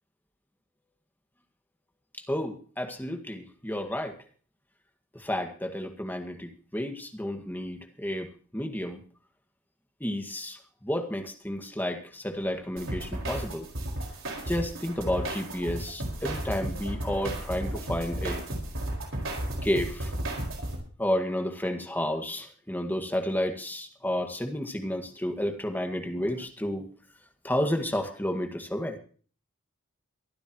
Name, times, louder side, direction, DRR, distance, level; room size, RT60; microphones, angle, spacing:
voice 1, 2.3-4.1 5.1-8.3 8.5-9.0 10.0-13.7 14.5-18.4 19.6-20.1 21.0-26.8 27.4-29.0, left 1 dB, 10° left, 4 dB, 1.8 m, -31 dB
sound 1, 12.8-20.8, right 1 dB, 60° right, 4.9 m, -34 dB
23.5 x 12.0 x 3.1 m, 0.42 s
head